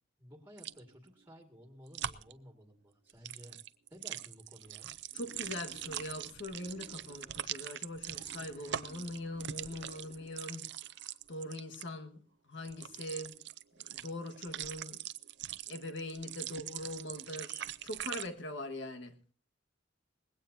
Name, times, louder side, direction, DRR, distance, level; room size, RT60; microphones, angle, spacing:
voice 1, 0.2-3.6 3.9-4.9, equal, 10° right, 2.0 m, -54 dB
sound 1, 0.6-0.8 1.9-2.3 3.1-11.9 12.6-18.3, right 11 dB, 65° right, 0.6 m, -42 dB
voice 2, 5.1-10.6 11.3-12.2 12.5-13.3 13.9-15.0 15.7-19.1, left 1 dB, 70° left, 1.6 m, -42 dB
Wild animals, 5.1-7.6 8.1-10.6, left 1 dB, 40° left, 1.4 m, -57 dB
20.0 x 16.5 x 2.7 m
head